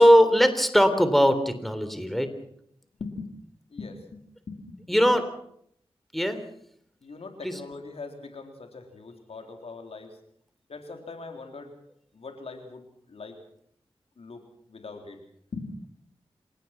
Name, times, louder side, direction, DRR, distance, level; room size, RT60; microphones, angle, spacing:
voice 1, 0.0-2.3 4.9-5.2 6.1-6.4 7.4-7.5, equal, ahead, 9 dB, 3.5 m, -20 dB
voice 2, 3.0-3.3 3.7-4.2 4.5-5.2 7.0-10.2 10.7-11.8 12.1-13.4 14.2-15.2 15.5-15.8, left 3 dB, 75° left, 4 dB, 3.8 m, -41 dB
27.5 x 17.5 x 6.0 m, 0.68 s
cardioid pair, 45°, 10 cm